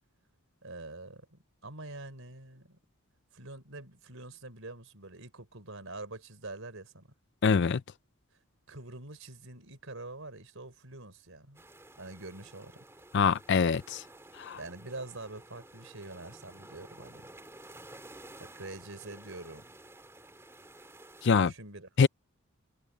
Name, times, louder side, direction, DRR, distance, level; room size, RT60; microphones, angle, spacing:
voice 1, 0.6-2.8 3.3-7.1 8.7-11.6 12.0-12.8 14.5-17.3 18.4-19.7 21.4-21.9, right 2 dB, 65° right, 4.4 m, -45 dB
voice 2, 7.4-7.8 13.1-14.0 14.3-14.6 21.2-21.5 22.0-22.1, left 5 dB, 55° left, 0.5 m, -24 dB
sound 1, 11.5-21.3, right 1 dB, 10° right, 2.5 m, -52 dB
head